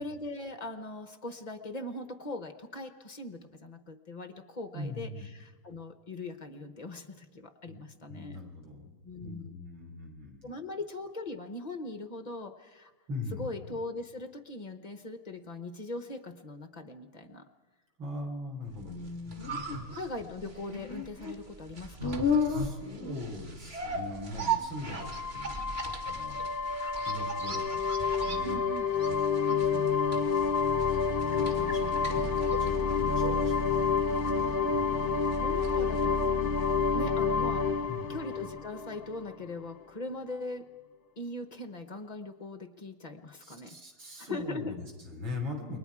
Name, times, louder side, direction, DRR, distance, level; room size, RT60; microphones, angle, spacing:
voice 1, 0.0-8.4 9.0-9.6 10.4-12.9 13.4-17.5 18.9-19.5 19.9-22.3 28.4-28.9 34.0-34.7 35.3-36.2 36.9-37.7 38.1-40.7 41.2-43.8 44.2-44.7, left 2 dB, 65° left, 9 dB, 0.4 m, -40 dB
voice 2, 4.7-5.3 7.7-7.8 8.1-8.9 9.2-10.5 13.1-13.6 18.0-19.0 19.7-19.9 22.4-26.5 27.0-28.6 29.6-30.5 30.8-34.1 34.7-35.1 37.9-38.1 43.4-45.8, left 2 dB, 70° right, 1 dB, 4.5 m, -41 dB
sound 1, 18.9-36.9 37.2-37.3, left 1 dB, 30° right, 1.9 m, -36 dB
sound 2, 25.0-39.5, left 5 dB, 45° left, 0.8 m, -29 dB
29.0 x 22.5 x 4.8 m, 1.4 s
omnidirectional pair, 2.2 m